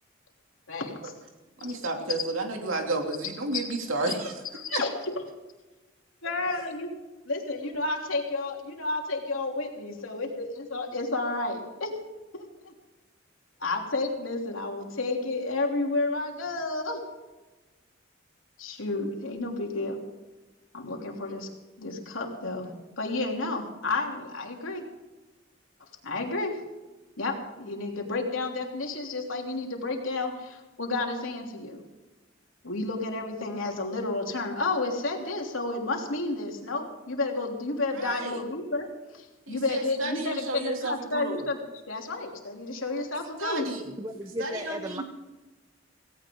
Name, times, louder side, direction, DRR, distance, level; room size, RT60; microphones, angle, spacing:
voice 1, 0.7-1.1 4.5-5.1 6.2-6.9 7.2-11.9 12.3-12.7 13.6-17.0 18.6-20.0 20.7-21.5 21.8-22.7 23.0-24.8 26.0-26.6 27.2-31.8 32.6-38.9 39.1-41.6 41.9-43.7, left 2 dB, 85° left, 1 dB, 3.2 m, -31 dB
voice 2, 1.6-4.3 4.7-4.8 6.2-6.3 37.9-38.4 39.5-41.4 43.4-43.8 44.4-45.0, right 2 dB, 85° right, 2 dB, 2.8 m, -32 dB
voice 3, 44.0-45.0, equal, 20° right, 6 dB, 0.7 m, -35 dB
17.5 x 17.0 x 3.8 m, 1.1 s
head